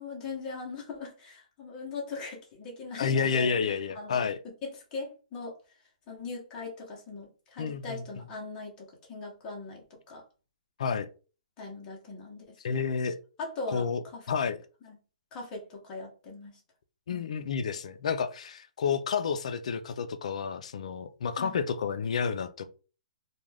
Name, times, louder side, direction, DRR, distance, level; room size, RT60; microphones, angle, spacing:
voice 1, 0.0-3.5 3.9-4.3 4.6-5.6 6.1-10.2 11.6-12.6 13.4-14.3 14.8-15.0 15.3-16.6 17.1-17.3 21.4-21.6, left 3 dB, 15° left, 0.8 m, -40 dB
voice 2, 3.0-4.4 7.6-8.0 10.8-11.1 12.6-13.2 13.7-14.0 14.3-14.6 17.1-22.7, left 6 dB, 55° left, 0.3 m, -30 dB
2.4 x 2.2 x 3.2 m
hypercardioid pair, 165°, 4 cm